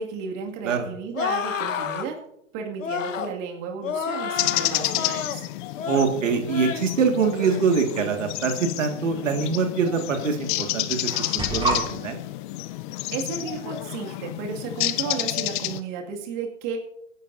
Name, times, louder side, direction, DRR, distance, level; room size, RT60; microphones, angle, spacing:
voice 1, 0.0-2.2 2.5-5.4 13.1-16.8, right 6 dB, 40° right, 1 dB, 2.3 m, -33 dB
sound 1, 1.1-2.1 2.8-3.3 3.8-5.4 5.8-6.1 6.5-6.9 7.3-7.6, left 7 dB, 80° left, 1.3 m, -30 dB
sound 2, 4.4-15.8, left 16 dB, 40° left, 0.8 m, -30 dB
voice 2, 5.9-12.2, right 5 dB, 75° right, 4 dB, 2.1 m, -24 dB
sound 3, 7.5-8.0 9.2-9.3 10.2-10.3 10.6-11.9, right 2 dB, 10° right, 2.8 m, -29 dB
24.5 x 11.0 x 2.7 m, 0.82 s
hypercardioid pair, 125°, 38 cm